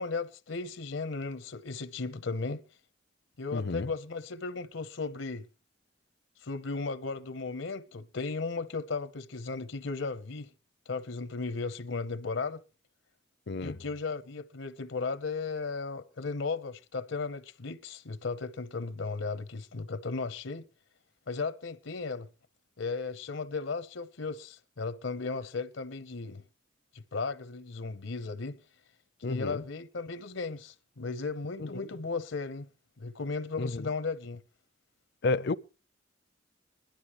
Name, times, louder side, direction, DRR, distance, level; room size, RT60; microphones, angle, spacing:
voice 1, 0.0-2.6 3.4-5.5 6.4-10.5 10.9-12.6 13.6-20.7 21.3-22.3 22.8-26.4 26.9-28.6 29.2-32.7 33.0-34.4, left 4 dB, 80° left, 0.9 m, -35 dB
voice 2, 3.5-3.9 13.5-13.8 29.2-29.6 31.6-31.9 33.6-33.9 35.2-35.6, left 3 dB, 60° left, 0.6 m, -31 dB
21.0 x 12.0 x 3.0 m
head